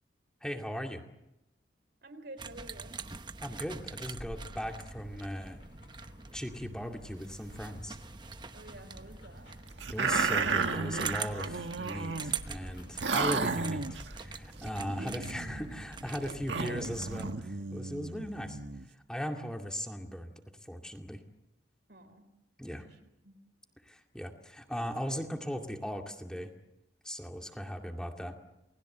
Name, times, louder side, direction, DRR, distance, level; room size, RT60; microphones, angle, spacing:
voice 1, 0.4-1.0 3.4-5.6 6.3-8.0 9.9-13.8 14.2-18.6 19.1-20.3 20.7-21.2 22.6-22.8 23.9-26.5 27.0-28.4, equal, 5° left, 3 dB, 2.3 m, -38 dB
voice 2, 2.0-3.0 8.5-9.5 14.8-15.2 16.2-16.8 21.9-22.2 22.7-23.4, right 1 dB, 60° right, 7 dB, 3.6 m, -49 dB
sound 1, 2.4-17.3, right 5 dB, 25° right, 0.9 m, -44 dB
sound 2, 3.8-15.4, left 1 dB, 75° left, 5.3 m, -55 dB
sound 3, 9.8-12.3 12.7-12.8 13.0-14.1 14.6-18.9, right 4 dB, 80° right, 1.6 m, -33 dB
29.0 x 20.0 x 8.0 m, 0.91 s
head